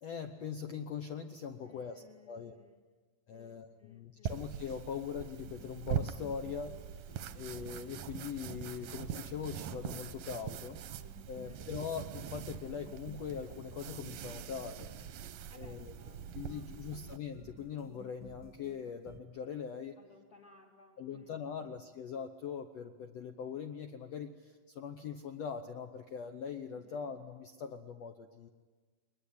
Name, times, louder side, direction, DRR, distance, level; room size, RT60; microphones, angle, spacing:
voice 1, 0.0-2.6 3.3-10.8 11.3-14.9 15.5-15.9 16.3-20.0 21.0-28.5, left 7 dB, 75° left, 6 dB, 1.5 m, -42 dB
voice 2, 1.6-2.8 3.3-4.4 11.3-11.6 15.5-17.2 20.0-21.8 26.8-27.1, left 5 dB, 40° left, 1 dB, 2.7 m, -61 dB
sound 1, 4.3-17.2, right 9 dB, 70° right, 1.9 m, -43 dB
sound 2, 5.4-19.2, right 2 dB, 20° right, 0.4 m, -56 dB
22.5 x 20.5 x 9.7 m, 1.4 s
omnidirectional pair, 4.4 m